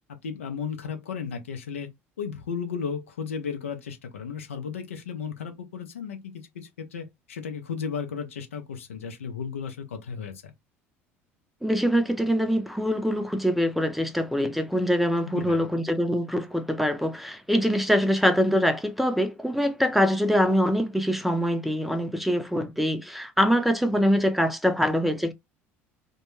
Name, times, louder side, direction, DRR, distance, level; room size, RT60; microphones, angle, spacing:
voice 1, 0.1-1.9 2.2-10.5 15.2-15.7, left 6 dB, 85° left, 0.6 m, -34 dB
voice 2, 11.6-25.3, equal, ahead, 0.5 m, -24 dB
2.2 x 2.2 x 3.0 m
hypercardioid pair, 65°, 7 cm